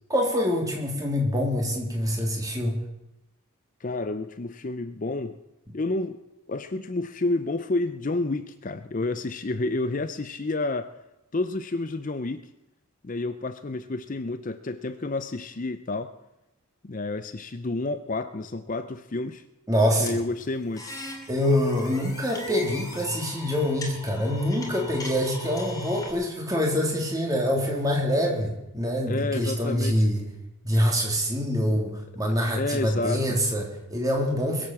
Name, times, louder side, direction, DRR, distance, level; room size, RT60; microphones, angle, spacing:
voice 1, 0.1-2.8 19.7-20.2 21.3-30.3 30.6-34.7, equal, 15° right, 0 dB, 3.0 m, -25 dB
voice 2, 3.8-5.4 5.7-6.2 6.5-10.9 11.3-12.5 13.0-16.1 16.8-19.4 20.0-20.9 29.1-30.1 32.6-33.4, left 2 dB, 35° left, 11 dB, 0.5 m, -30 dB
sound 1, 20.1-26.1, left 1 dB, 15° left, 2.6 m, -38 dB
21.5 x 7.7 x 7.1 m, 0.91 s
head